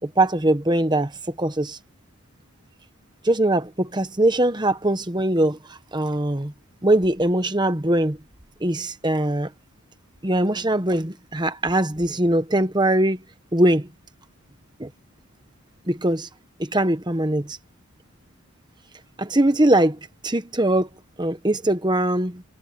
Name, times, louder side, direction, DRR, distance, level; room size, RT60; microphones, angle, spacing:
voice 1, 0.0-1.1 1.4-1.8 3.2-5.6 5.9-6.5 6.8-8.2 8.6-9.5 10.2-13.2 13.5-13.9 14.8-14.9 15.9-16.3 16.6-17.6 19.2-20.0 20.2-20.9 21.2-22.4, right 1 dB, 20° right, 1.2 m, -21 dB
head